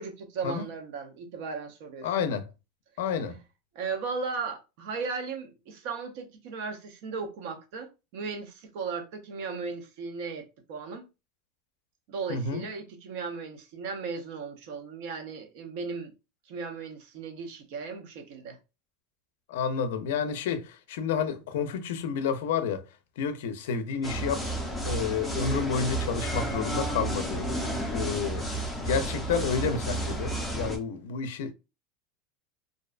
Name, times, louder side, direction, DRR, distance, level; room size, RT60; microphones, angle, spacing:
voice 1, 0.0-2.1 3.7-11.0 12.1-16.1 16.5-18.6, right 5 dB, 60° right, 0.6 m, -36 dB
voice 2, 2.0-2.5 3.0-3.4 12.3-12.6 19.5-22.8 23.2-24.4 24.8-28.5 28.7-31.5, left 6 dB, 85° left, 0.4 m, -30 dB
sound 1, 24.0-30.8, right 1 dB, 5° left, 0.5 m, -31 dB
2.5 x 2.1 x 2.4 m
supercardioid pair, 155°, 0 cm